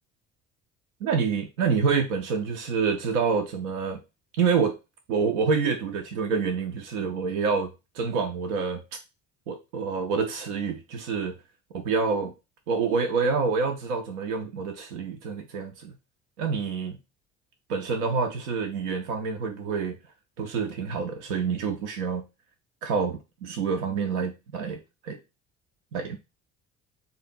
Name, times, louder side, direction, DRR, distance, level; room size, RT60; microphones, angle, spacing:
voice 1, 1.0-4.0 4.4-4.7 5.1-7.7 7.9-8.8 9.5-11.4 11.7-12.3 12.7-15.9 16.4-17.0 17.7-20.0 20.4-22.2 22.8-25.2 25.9-26.2, right 5 dB, 75° right, 0.6 m, -27 dB
3.4 x 2.7 x 4.1 m
hypercardioid pair, 60°, 35 cm